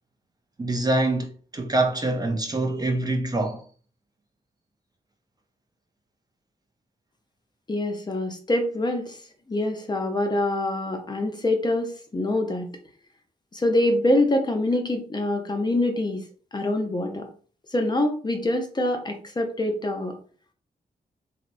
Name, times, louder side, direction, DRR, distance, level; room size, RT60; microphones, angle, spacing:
voice 1, 0.6-3.6, right 2 dB, 25° right, 0.4 m, -25 dB
voice 2, 7.7-9.2 9.5-12.7 13.5-16.2 16.5-17.3 17.7-20.1, left 1 dB, 25° left, 0.5 m, -25 dB
2.7 x 2.0 x 2.5 m
cardioid pair, 80°, 16 cm